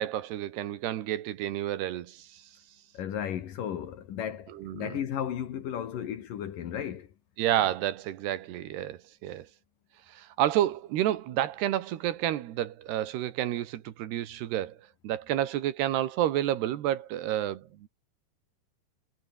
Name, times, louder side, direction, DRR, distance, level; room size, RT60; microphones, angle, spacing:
voice 1, 0.0-2.4 4.5-4.9 7.4-9.5 10.1-14.8 15.0-17.9, right 12 dB, 70° right, 3.4 m, -30 dB
voice 2, 2.9-7.1, left 9 dB, 60° left, 2.9 m, -34 dB
omnidirectional pair, 5.0 m